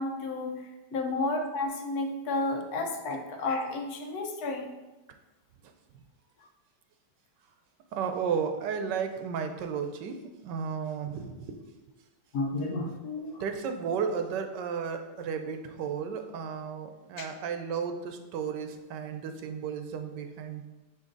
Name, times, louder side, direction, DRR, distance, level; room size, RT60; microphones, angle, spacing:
voice 1, 0.0-4.8 12.3-13.4 17.2-17.3, left 2 dB, 70° left, 4 dB, 1.2 m, -32 dB
voice 2, 7.9-11.6 13.4-20.7, right 6 dB, 85° right, 6 dB, 1.3 m, -33 dB
9.0 x 3.1 x 3.8 m, 1.1 s
omnidirectional pair, 1.8 m